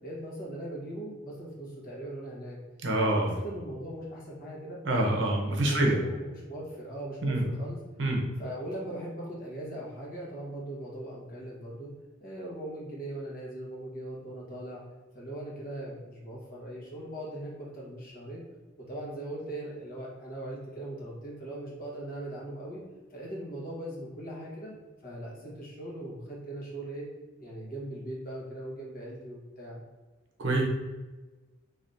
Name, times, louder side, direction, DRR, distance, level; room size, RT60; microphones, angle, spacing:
voice 1, 0.0-2.6 3.0-4.8 5.7-7.8 8.4-11.9 12.2-14.8 15.1-18.4 18.9-22.8 23.1-24.7 25.0-27.1 27.4-29.8, right 1 dB, 50° left, -4 dB, 1.2 m, -40 dB
voice 2, 2.8-3.4 4.9-6.0 7.2-7.4 8.0-8.2 30.4-30.6, right 1 dB, 70° right, 0 dB, 0.8 m, -26 dB
3.5 x 3.5 x 2.7 m, 1.2 s
head